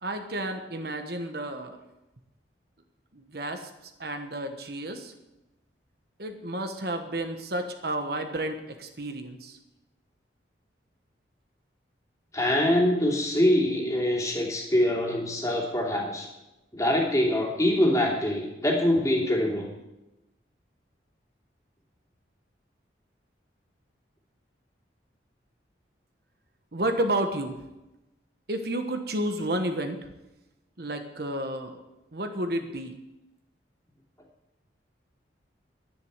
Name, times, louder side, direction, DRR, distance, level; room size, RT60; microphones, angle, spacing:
voice 1, 0.0-1.8 3.1-3.7 4.0-5.1 6.2-9.6 26.7-27.6 28.5-30.1 30.8-31.8 32.1-33.0, right 1 dB, 55° right, 6 dB, 1.2 m, -31 dB
voice 2, 12.3-16.3 16.7-19.7, left 1 dB, 20° left, -2 dB, 2.8 m, -24 dB
11.0 x 10.5 x 8.1 m, 0.98 s
head